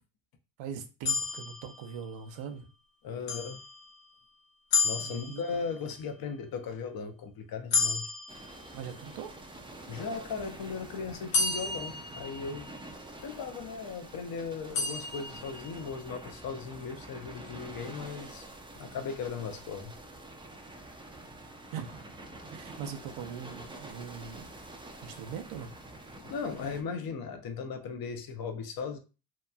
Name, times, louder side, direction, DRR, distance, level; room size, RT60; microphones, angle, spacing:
voice 1, 0.6-2.6 4.8-5.6 8.7-9.4 21.7-24.5 25.0-25.7, right 7 dB, 65° right, 0.6 m, -41 dB
sound 1, 1.1-2.4 3.3-4.2 4.7-5.9 7.7-9.2 11.3-12.9 14.7-15.9, left 4 dB, 85° left, 1.1 m, -32 dB
voice 2, 3.0-3.6 4.8-8.1 9.9-12.7 13.2-18.5 18.8-19.9 26.2-29.0, left 5 dB, 45° left, 0.7 m, -37 dB
sound 2, 8.3-26.8, right 1 dB, 10° right, 0.4 m, -47 dB
2.9 x 2.3 x 2.3 m
supercardioid pair, 75°, 49 cm